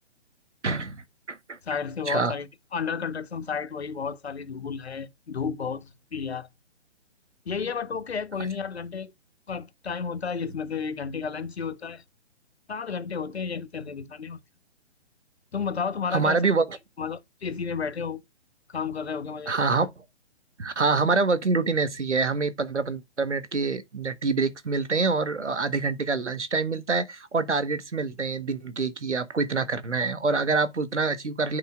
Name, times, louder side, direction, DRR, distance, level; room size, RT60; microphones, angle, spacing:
voice 1, 0.6-1.0 1.3-1.6 2.1-2.3 16.1-16.8 19.5-20.0 20.6-31.6, right 4 dB, 85° right, 1.2 m, -26 dB
voice 2, 1.7-6.5 7.5-9.1 9.5-12.0 12.7-14.4 15.5-16.4 17.0-18.2 18.7-19.5, left 6 dB, 65° left, 1.1 m, -32 dB
10.0 x 5.4 x 2.3 m
figure-of-eight pair, 140°, 34 cm